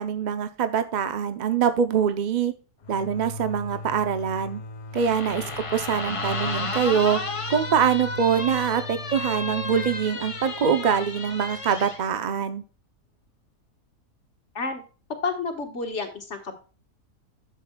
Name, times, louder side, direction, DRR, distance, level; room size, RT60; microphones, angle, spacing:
voice 1, 0.0-2.5 2.9-4.6 4.9-5.4 5.7-7.2 7.5-12.6, right 7 dB, 60° right, 9 dB, 0.4 m, -24 dB
sound 1, 2.8-12.3, left 2 dB, 85° left, 0.4 m, -39 dB
sound 2, 5.0-12.0, left 3 dB, 25° left, 0.7 m, -33 dB
voice 2, 5.2-5.5 14.5-14.8 15.2-16.6, left 4 dB, 50° left, 4 dB, 1.7 m, -31 dB
11.5 x 7.5 x 2.3 m, 0.36 s
omnidirectional pair, 1.7 m